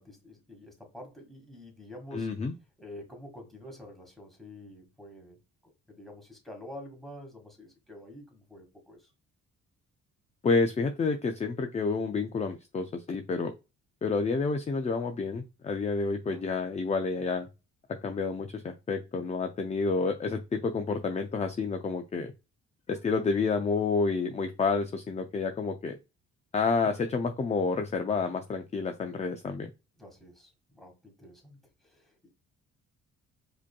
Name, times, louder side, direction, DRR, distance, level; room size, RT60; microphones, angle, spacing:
voice 1, 0.0-2.3 2.8-9.1 16.2-16.4 30.0-32.3, left 1 dB, ahead, 1.6 m, -48 dB
voice 2, 2.1-2.5 10.4-13.5 14.0-17.5 18.0-22.3 22.9-26.0 26.5-29.7, left 4 dB, 25° left, 0.4 m, -29 dB
4.9 x 2.8 x 2.2 m
cardioid pair, 90°, 30 cm